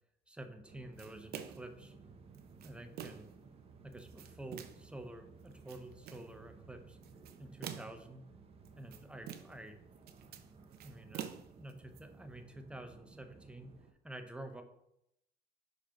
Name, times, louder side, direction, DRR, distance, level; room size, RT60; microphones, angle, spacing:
voice 1, 0.3-1.9 2.6-3.3 3.8-7.0 7.4-8.2 8.7-9.8 10.7-13.7 14.0-14.6, right 1 dB, 5° right, 6 dB, 0.8 m, -49 dB
sound 1, 0.6-13.9, right 4 dB, 35° right, 0.9 m, -58 dB
sound 2, 1.0-1.7 2.3-3.4 3.9-4.9 5.5-6.3 7.0-8.1 8.7-9.7 10.0-12.0, right 10 dB, 70° right, 0.7 m, -47 dB
4.8 x 4.6 x 5.7 m, 0.80 s
cardioid pair, 110°, 17 cm